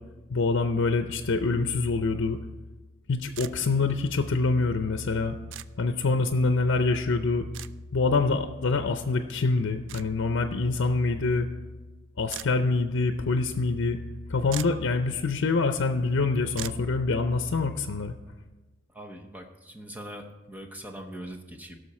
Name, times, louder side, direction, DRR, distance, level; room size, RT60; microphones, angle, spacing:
voice 1, 0.3-2.4 3.1-5.4 5.8-7.5 7.9-11.5 12.2-14.0 14.3-18.1, left 3 dB, 85° left, 7 dB, 0.6 m, -25 dB
sound 1, 3.4-3.5 5.5-5.7 7.5-7.7 9.9-10.1 12.3-12.5 14.1-14.2 14.5-14.8 16.6-16.8, right 12 dB, 70° right, 0.3 m, -38 dB
voice 2, 18.9-21.8, equal, 10° right, 3 dB, 0.9 m, -42 dB
16.5 x 6.5 x 4.3 m, 1.2 s
head